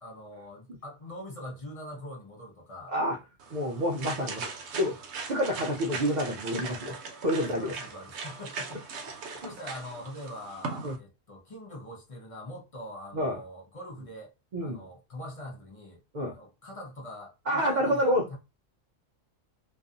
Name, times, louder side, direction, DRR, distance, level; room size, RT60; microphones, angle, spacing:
voice 1, 0.0-2.9 7.5-8.8 9.4-14.3 14.6-16.0 16.3-18.4, left 1 dB, 35° left, 0.6 m, -43 dB
sound 1, 3.4-11.0, right 4 dB, 70° right, 0.8 m, -39 dB
voice 2, 3.5-4.5 4.8-5.0 5.2-7.7 10.8-11.0 13.1-13.4 14.5-14.8 16.1-16.4 17.5-18.4, equal, 85° right, 0.4 m, -28 dB
2.5 x 2.4 x 2.4 m
omnidirectional pair, 1.3 m